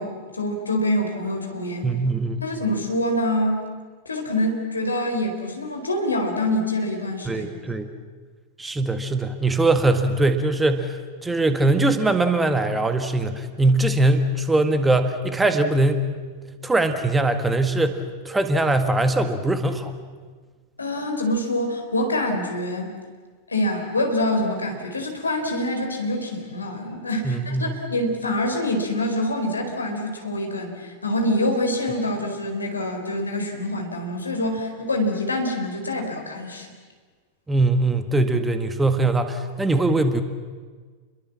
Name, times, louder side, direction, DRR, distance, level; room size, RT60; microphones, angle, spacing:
voice 1, 0.0-1.9 2.4-3.6 4.0-7.4 20.8-22.9 23.5-36.7, left 1 dB, 80° left, 3 dB, 4.4 m, -25 dB
voice 2, 1.8-2.4 7.3-7.9 8.6-16.0 16.6-19.9 27.2-27.8 37.5-40.2, right 2 dB, 10° right, 8 dB, 1.8 m, -21 dB
29.5 x 22.5 x 7.5 m, 1.5 s
figure-of-eight pair, 90°, 0 cm